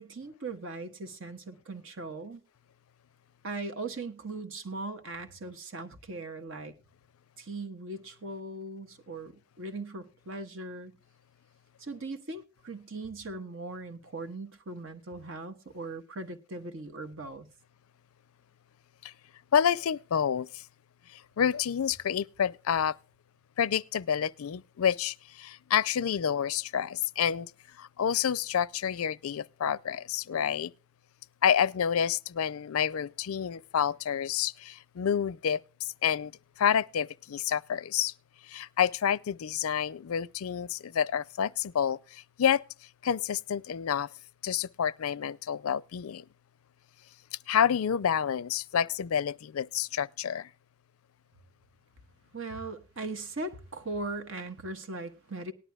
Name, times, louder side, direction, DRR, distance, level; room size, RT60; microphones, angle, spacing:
voice 1, 0.0-2.4 3.4-6.7 7.4-10.9 11.8-17.5 52.3-55.5, right 2 dB, 70° right, 1.3 m, -39 dB
voice 2, 19.5-20.6 21.1-23.0 23.6-27.5 27.8-30.7 31.4-36.3 36.6-38.1 38.5-42.6 43.0-44.1 44.4-46.2 47.5-50.5, left 8 dB, 90° left, 0.4 m, -29 dB
18.5 x 11.0 x 2.3 m
head